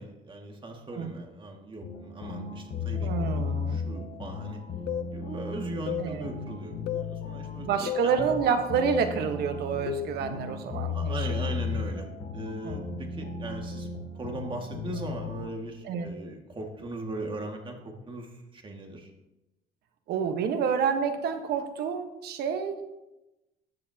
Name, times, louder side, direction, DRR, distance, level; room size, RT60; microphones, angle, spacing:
voice 1, 0.0-4.6 5.1-8.2 10.3-10.5 10.9-12.1 12.3-13.9 14.1-19.1, right 2 dB, 30° right, 2 dB, 2.0 m, -39 dB
sound 1, 1.8-15.5, left 4 dB, 50° left, 1.3 m, -35 dB
voice 2, 3.0-3.8 6.0-6.3 7.6-11.3 12.6-12.9 15.9-16.1 20.1-22.9, right 6 dB, 70° right, 7 dB, 1.3 m, -28 dB
sound 2, 4.9-5.1 5.9-6.1 6.9-7.1 7.9-8.1 8.9-9.1 9.9-10.2, left 12 dB, 80° left, 0.7 m, -32 dB
15.0 x 9.2 x 2.9 m, 0.99 s
cardioid pair, 110°, 17 cm